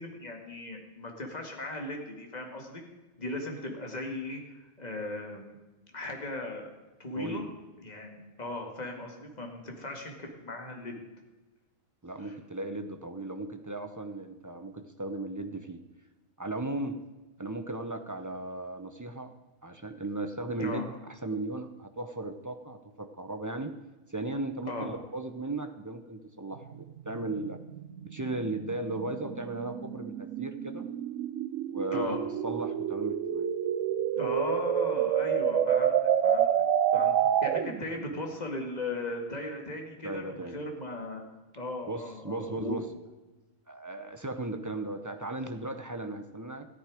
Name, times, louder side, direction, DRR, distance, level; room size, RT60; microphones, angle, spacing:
voice 1, 0.0-2.8 3.2-5.5 5.9-6.7 7.0-7.4 7.8-11.0 12.2-12.3 20.6-20.9 24.7-24.9 31.9-32.2 34.2-36.0 36.2-36.5 36.9-37.1 37.4-41.2 41.6-42.8, left 2 dB, 30° left, 2 dB, 2.0 m, -37 dB
voice 2, 7.2-7.5 12.0-15.8 16.4-17.0 17.4-19.3 19.6-23.7 24.1-27.6 28.0-30.9 31.7-32.2 32.4-33.4 37.9-38.0 40.0-40.6 41.9-42.9 43.7-46.7, right 2 dB, 20° right, 7 dB, 0.6 m, -36 dB
sound 1, 26.6-37.9, right 9 dB, 70° right, 1.0 m, -29 dB
14.0 x 9.8 x 5.0 m, 1.1 s
omnidirectional pair, 1.4 m